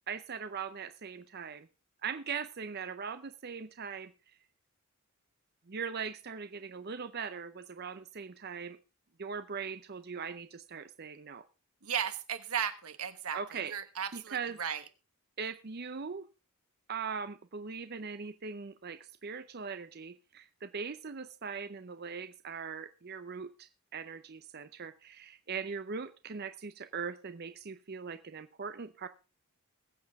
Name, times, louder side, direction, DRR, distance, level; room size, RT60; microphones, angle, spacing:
voice 1, 0.1-1.7 2.0-4.1 5.7-8.8 9.2-11.4 13.3-13.7 14.1-14.6 15.4-16.3 16.9-29.1, right 6 dB, 45° right, 11 dB, 0.6 m, -40 dB
voice 2, 11.8-14.8, right 8 dB, 80° right, 10 dB, 1.3 m, -36 dB
21.5 x 7.8 x 3.5 m, 0.31 s
head